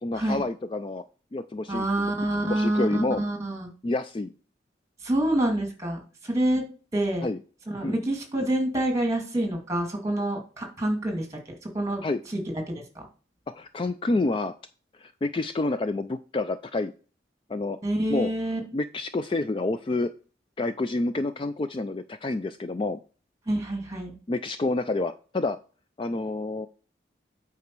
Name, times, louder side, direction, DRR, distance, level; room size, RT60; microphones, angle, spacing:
voice 1, 0.0-1.0 1.3-2.1 2.4-3.3 3.8-4.3 7.2-7.4 7.8-8.0 12.0-12.2 13.5-14.5 15.0-16.9 17.5-17.8 18.1-18.3 18.7-20.1 20.6-23.0 24.3-25.6 26.0-26.7, left 2 dB, 30° left, 10 dB, 0.3 m, -28 dB
voice 2, 1.7-3.7 5.0-6.6 6.9-7.3 7.7-12.0 12.7-12.8 17.8-18.6 23.5-24.2, right 1 dB, 15° right, 2 dB, 2.3 m, -27 dB
8.4 x 4.9 x 4.6 m, 0.38 s
head